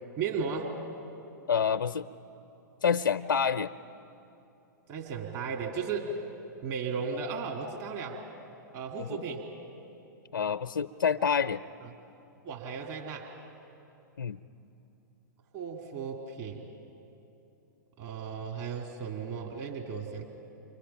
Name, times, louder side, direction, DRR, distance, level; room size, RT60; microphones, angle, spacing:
voice 1, 0.2-0.8 4.9-6.1 6.6-8.2 8.7-9.5 12.4-13.3 15.5-16.6 18.0-20.2, right 5 dB, 35° right, 0 dB, 2.6 m, -35 dB
voice 2, 1.5-2.1 2.8-3.7 9.0-9.2 10.3-11.6 14.2-14.4, left 7 dB, 85° left, 9 dB, 0.5 m, -27 dB
29.0 x 24.0 x 5.8 m, 2.9 s
hypercardioid pair, 110°, 11 cm